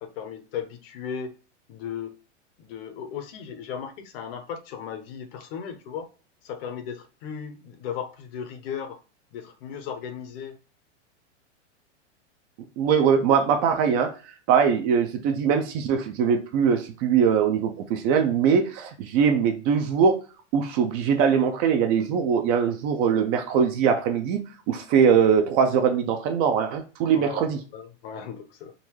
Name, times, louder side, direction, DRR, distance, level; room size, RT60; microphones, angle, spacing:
voice 1, 0.0-1.3 1.7-2.1 2.6-6.1 6.4-9.0 9.3-10.6 27.1-27.4 27.7-28.7, left 7 dB, 50° left, 8 dB, 0.9 m, -36 dB
voice 2, 12.8-14.1 14.5-20.2 20.5-27.6, right 7 dB, 35° right, 6 dB, 0.4 m, -22 dB
3.9 x 2.6 x 3.0 m, 0.34 s
supercardioid pair, 145°, 36 cm